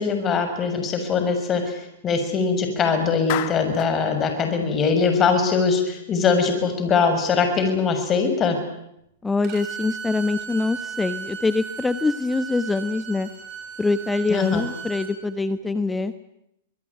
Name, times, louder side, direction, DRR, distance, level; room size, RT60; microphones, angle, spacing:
voice 1, 0.0-8.6 14.3-14.6, left 5 dB, 25° left, 6 dB, 6.3 m, -22 dB
Clapping, 3.3-4.0, left 14 dB, 50° left, 2.3 m, -30 dB
voice 2, 9.2-13.3 13.8-16.1, left 3 dB, 10° left, 12 dB, 1.2 m, -24 dB
Bowed string instrument, 9.4-15.1, right 6 dB, 40° right, 7.4 m, -36 dB
25.0 x 21.0 x 9.8 m, 0.81 s
hypercardioid pair, 115°, 0 cm